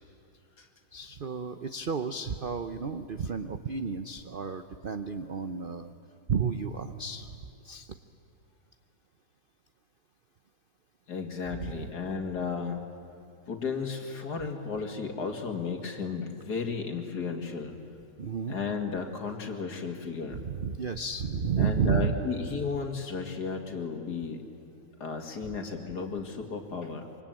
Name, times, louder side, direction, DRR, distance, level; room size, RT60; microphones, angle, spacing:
voice 1, 0.9-5.9 6.3-7.4 7.6-8.0 11.6-11.9 18.2-18.5 20.3-22.2, right 6 dB, 60° right, 8 dB, 0.5 m, -32 dB
voice 2, 11.1-12.8 13.5-17.7 18.5-20.4 21.6-24.4 25.0-27.0, left 5 dB, 55° left, 4 dB, 2.7 m, -34 dB
26.0 x 24.0 x 9.0 m, 2.6 s
omnidirectional pair, 2.0 m